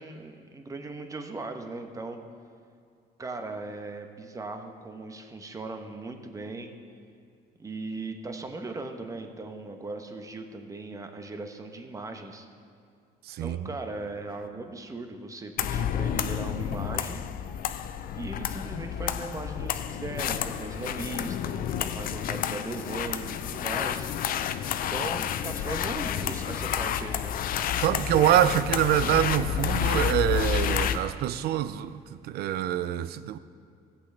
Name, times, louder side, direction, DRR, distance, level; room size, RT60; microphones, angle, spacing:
voice 1, 0.0-2.2 3.2-6.7 7.6-12.5 13.4-17.2 18.1-24.1 24.7-27.3, right 2 dB, 20° right, 1.0 m, -38 dB
voice 2, 13.3-13.7 27.8-33.4, right 12 dB, 70° right, 0.5 m, -25 dB
sound 1, 15.6-31.0, left 9 dB, 60° left, 0.5 m, -30 dB
16.5 x 8.1 x 3.3 m
cardioid pair, 110°, 17 cm